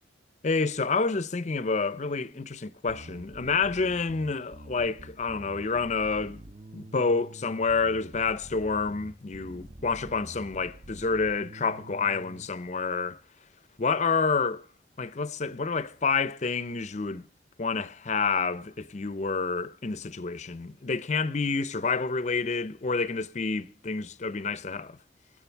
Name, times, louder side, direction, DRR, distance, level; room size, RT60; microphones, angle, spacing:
voice 1, 0.4-6.4 6.7-13.2 13.8-14.7 15.0-17.3 17.6-25.0, left 4 dB, 40° left, 0.6 m, -28 dB
Bass guitar, 2.9-12.5, right 1 dB, 35° right, 0.6 m, -47 dB
21.5 x 7.6 x 4.5 m
head